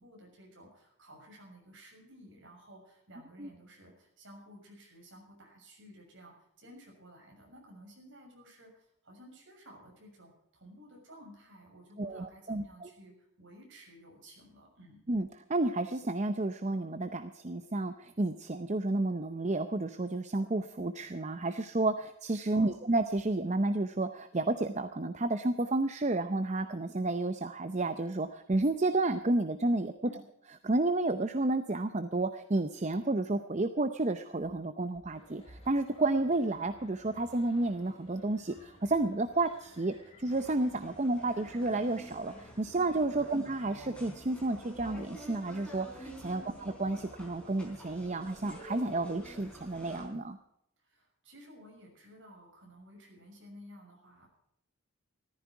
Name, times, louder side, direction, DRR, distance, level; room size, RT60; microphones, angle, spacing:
voice 1, 0.0-15.0 22.5-22.8 30.0-30.2 43.2-43.5 46.3-46.6 50.8-54.3, equal, 60° right, 0 dB, 6.5 m, -54 dB
voice 2, 12.0-12.9 15.1-29.9 30.6-46.4 46.8-50.4, right 2 dB, 30° right, 9 dB, 0.7 m, -31 dB
sound 1, 35.1-42.8, left 1 dB, 30° left, 5.5 m, -58 dB
sound 2, 40.3-50.1, equal, 5° left, 4.1 m, -49 dB
14.5 x 14.0 x 4.7 m, 0.78 s
head